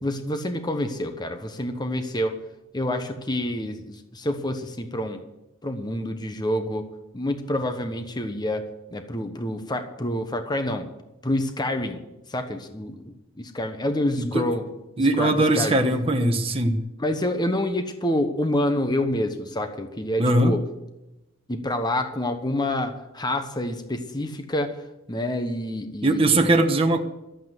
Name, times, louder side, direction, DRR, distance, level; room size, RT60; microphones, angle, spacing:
voice 1, 0.0-2.4 2.7-5.2 5.6-6.8 7.1-8.6 8.9-10.9 11.2-12.0 12.3-14.6 15.2-15.8 17.0-20.6 21.5-24.8 25.1-26.4, left 1 dB, 20° left, 7 dB, 1.1 m, -27 dB
voice 2, 15.0-16.8 20.2-20.5 26.0-27.0, right 2 dB, 30° right, 3 dB, 1.3 m, -20 dB
13.0 x 8.5 x 7.9 m, 0.94 s
head